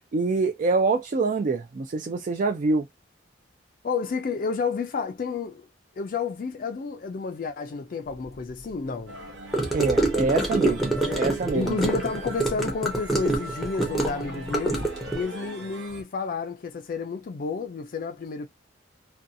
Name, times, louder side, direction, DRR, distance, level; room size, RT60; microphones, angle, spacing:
voice 1, 0.1-2.9 9.7-11.8, right 3 dB, 45° right, 0.3 m, -25 dB
voice 2, 3.8-5.7 6.0-9.1 10.9-14.8 15.1-18.5, left 4 dB, 45° left, 0.3 m, -31 dB
sound 1, 9.1-16.0, right 1 dB, 85° right, 1.0 m, -40 dB
Gurgling / Car passing by / Sink (filling or washing), 9.5-15.2, right 2 dB, ahead, 0.6 m, -26 dB
2.6 x 2.3 x 2.6 m
head